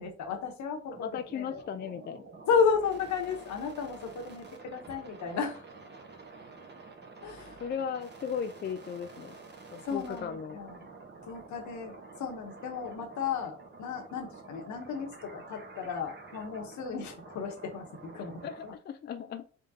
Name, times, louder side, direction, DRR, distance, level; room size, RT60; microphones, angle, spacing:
voice 1, 0.0-1.6 2.5-5.6 7.2-7.6 9.9-10.9 11.2-18.7, left 6 dB, 70° left, 4 dB, 1.0 m, -33 dB
sound 1, 0.9-18.7, right 4 dB, 35° right, 1.1 m, -49 dB
voice 2, 1.0-2.3 7.6-9.3 9.7-10.6 18.4-19.4, left 7 dB, 35° left, 8 dB, 0.4 m, -36 dB
3.7 x 3.6 x 2.7 m, 0.38 s
cardioid pair, 90°, 30 cm